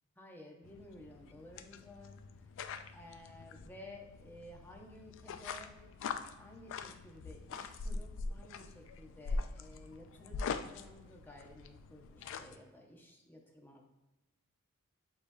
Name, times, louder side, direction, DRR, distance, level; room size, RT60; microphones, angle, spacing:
voice 1, 0.2-2.2 2.9-5.8 6.4-13.9, left 1 dB, 10° left, 0 dB, 0.7 m, -54 dB
sound 1, 0.6-12.6, left 4 dB, 60° left, 0.3 m, -43 dB
6.5 x 2.9 x 2.6 m, 1.1 s
head